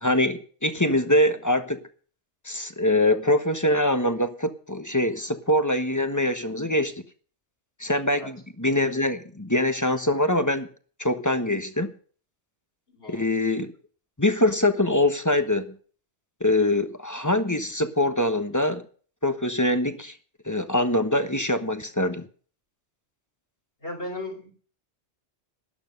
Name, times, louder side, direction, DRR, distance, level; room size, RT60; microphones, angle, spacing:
voice 1, 0.0-1.9 2.4-7.0 7.8-10.7 11.0-11.9 13.1-13.7 14.2-15.8 16.4-18.8 19.2-20.2 20.4-22.3, left 1 dB, 15° left, 9 dB, 1.2 m, -24 dB
voice 2, 12.9-13.2 23.8-24.5, left 1 dB, 60° left, -3 dB, 5.1 m, -36 dB
12.5 x 11.5 x 5.3 m, 0.42 s
omnidirectional pair, 1.2 m